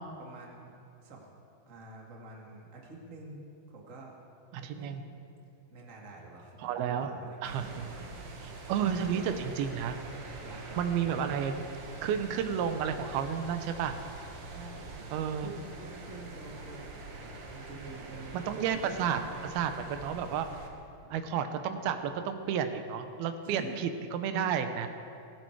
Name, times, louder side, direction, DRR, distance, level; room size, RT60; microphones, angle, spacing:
voice 1, 0.2-1.3 1.7-4.2 4.7-5.1 5.7-8.3 8.9-9.4 10.4-11.1 14.4-19.5 21.0-21.3 23.4-23.8, right 3 dB, 30° right, -2 dB, 1.7 m, -48 dB
voice 2, 4.5-5.0 6.6-7.1 7.4-7.9 8.7-10.0 10.8-11.5 12.0-14.0 15.1-15.5 18.3-19.2 19.5-20.5 21.1-24.9, right 8 dB, 85° right, 8 dB, 2.8 m, -31 dB
sound 1, 7.4-20.7, right 3 dB, 55° right, 1.8 m, -45 dB
17.5 x 16.0 x 4.7 m, 2.6 s
omnidirectional pair, 4.3 m